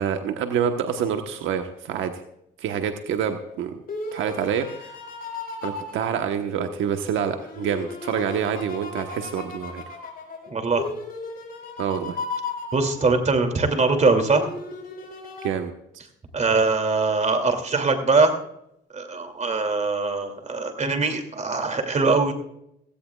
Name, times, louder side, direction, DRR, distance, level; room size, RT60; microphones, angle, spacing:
voice 1, 0.0-2.1 2.6-3.8 4.1-4.9 5.6-9.8 11.8-12.2 15.4-15.7, right 8 dB, 85° right, 6 dB, 1.1 m, -27 dB
sound 1, 3.3-6.9 7.4-13.6 14.3-15.5, left 3 dB, 50° left, 4.3 m, -36 dB
voice 2, 10.5-10.9 12.7-14.4 16.3-18.3 18.9-22.3, right 3 dB, 35° right, 6 dB, 2.6 m, -22 dB
17.0 x 16.0 x 2.4 m, 0.78 s
cardioid pair, 90°, 20 cm